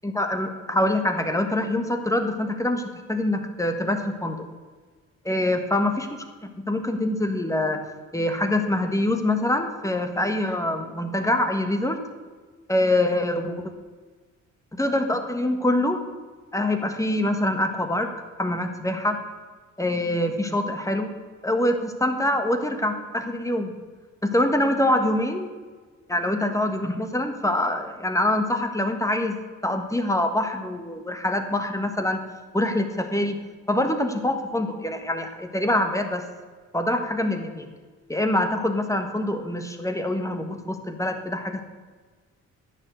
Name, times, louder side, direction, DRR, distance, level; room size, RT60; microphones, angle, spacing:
voice 1, 0.0-2.8 3.1-4.5 5.3-6.1 6.4-7.8 8.1-12.0 12.7-13.6 14.7-16.0 16.5-18.1 18.4-19.2 19.8-21.1 21.4-23.7 24.2-25.5 26.1-29.4 29.6-32.2 32.5-33.4 33.7-36.2 36.7-37.7 38.1-41.6, left 1 dB, 10° left, 6 dB, 1.4 m, -24 dB
10.5 x 7.4 x 8.0 m, 1.4 s
cardioid pair, 90°, 30 cm